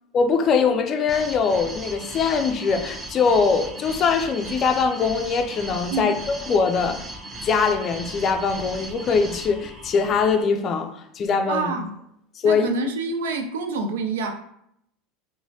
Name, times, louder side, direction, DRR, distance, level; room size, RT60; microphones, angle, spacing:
voice 1, 0.1-7.0 7.4-11.7 12.4-12.7, left 5 dB, 40° left, 0.4 m, -22 dB
sound 1, 1.1-10.4, right 1 dB, 25° right, 0.5 m, -37 dB
voice 2, 11.5-11.9 12.4-14.3, right 3 dB, 85° right, 0.4 m, -27 dB
3.1 x 2.1 x 2.7 m
hypercardioid pair, 100°, 0 cm